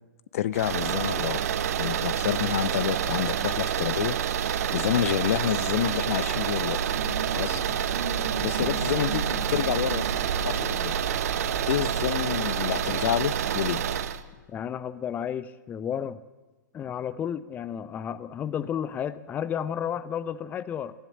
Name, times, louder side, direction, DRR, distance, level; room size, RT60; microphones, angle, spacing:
voice 1, 0.3-1.5 1.8-4.2 4.5-6.8 7.3-10.9 11.7-13.8, left 11 dB, 45° left, 18 dB, 0.8 m, -29 dB
sound 1, 0.5-14.2, right 9 dB, 50° right, 1.4 m, -28 dB
sound 2, 6.7-12.1, right 5 dB, 70° right, 3.0 m, -37 dB
voice 2, 14.5-16.2 16.7-20.9, left 8 dB, 15° left, 17 dB, 0.7 m, -32 dB
25.5 x 15.5 x 7.7 m, 1.2 s
figure-of-eight pair, 115°, 10 cm